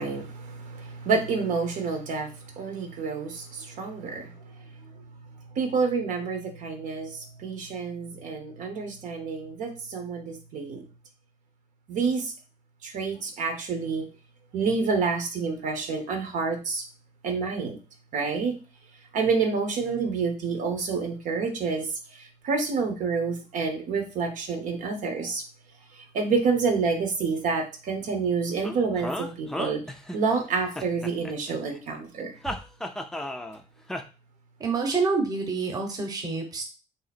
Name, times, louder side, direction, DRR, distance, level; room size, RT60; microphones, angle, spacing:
voice 1, 0.0-4.3 4.9-5.0 5.5-10.9 11.9-12.3 12.8-14.1 14.5-16.8 17.2-17.8 18.1-18.5 19.1-25.4 26.0-29.8 30.1-32.4, right 4 dB, 80° right, 5 dB, 1.0 m, -28 dB
sound 1, 28.6-30.4 30.8-31.8 32.4-33.6 33.9-34.0, left 1 dB, 5° left, 0.4 m, -34 dB
voice 2, 34.6-36.6, right 4 dB, 30° right, 3 dB, 0.9 m, -27 dB
3.8 x 2.8 x 4.2 m, 0.32 s
cardioid pair, 170°, 13 cm